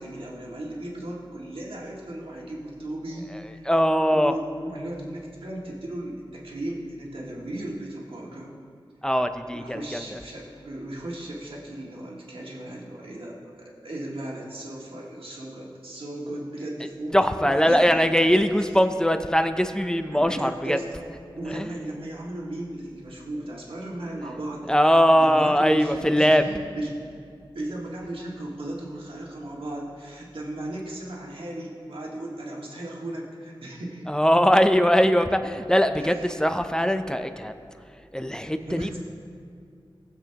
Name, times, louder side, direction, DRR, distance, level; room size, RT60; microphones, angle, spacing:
voice 1, 0.0-3.7 4.1-8.5 9.5-18.1 20.1-21.0 21.3-24.7 25.2-27.0 27.5-34.2 36.0-36.7 38.6-39.0, right 1 dB, 80° right, -4 dB, 1.9 m, -36 dB
voice 2, 3.7-4.3 9.0-10.2 17.1-20.8 21.5-21.7 24.7-26.4 34.1-37.5 38.1-39.0, equal, 10° left, 8 dB, 0.5 m, -21 dB
20.0 x 7.3 x 2.9 m, 2.3 s
wide cardioid pair, 80°, 9 cm